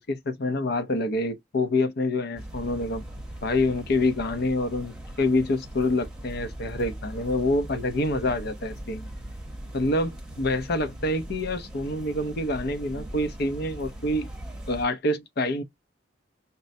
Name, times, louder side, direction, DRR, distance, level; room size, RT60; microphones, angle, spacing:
voice 1, 0.0-3.0 3.4-9.1 9.7-14.3 14.7-15.6, left 2 dB, 55° left, 0.6 m, -26 dB
sound 1, 2.4-14.9, right 1 dB, 5° right, 0.8 m, -40 dB
5.3 x 2.1 x 2.6 m
head